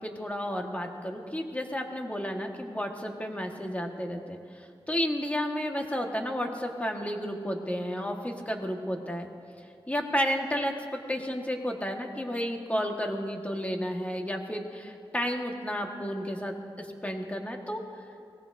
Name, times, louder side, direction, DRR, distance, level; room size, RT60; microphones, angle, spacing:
voice 1, 0.0-9.3 9.9-17.8, equal, 15° left, 2 dB, 1.6 m, -32 dB
23.0 x 18.0 x 2.7 m, 2.4 s
wide cardioid pair, 70°, 10 cm